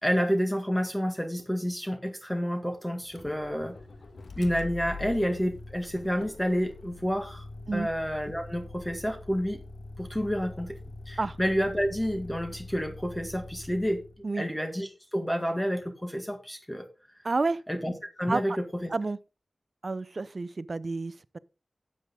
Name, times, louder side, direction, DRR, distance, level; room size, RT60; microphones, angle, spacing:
voice 1, 0.0-3.8 4.4-7.4 7.7-9.6 10.0-10.8 11.1-14.0 14.3-16.9 17.7-18.9, equal, 10° left, 1.9 m, -29 dB
Motor vehicle (road), 3.0-14.2, left 3 dB, 90° left, 1.6 m, -44 dB
voice 2, 17.2-17.6 18.3-18.4 18.9-19.2 19.8-21.4, right 3 dB, 55° right, 0.6 m, -30 dB
12.0 x 7.9 x 3.8 m
wide cardioid pair, 55°, 0 cm